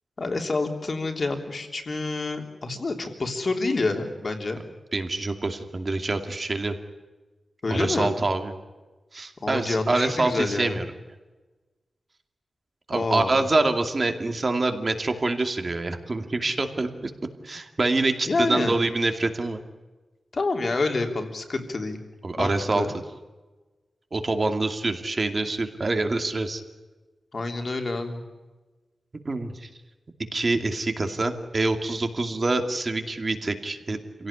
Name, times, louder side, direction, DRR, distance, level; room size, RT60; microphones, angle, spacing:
voice 1, 0.2-4.6 7.6-8.2 9.4-10.8 12.9-13.3 18.3-18.8 20.3-22.0 22.4-22.9 27.3-28.2, left 3 dB, 45° left, 4 dB, 3.4 m, -28 dB
voice 2, 4.9-6.8 7.7-8.5 9.1-10.9 12.9-17.1 17.4-19.6 22.2-22.9 24.1-26.6 29.2-29.7 30.3-34.3, right 2 dB, 35° right, 6 dB, 2.5 m, -26 dB
27.5 x 17.0 x 10.0 m, 1.2 s
wide cardioid pair, 120°, 0 cm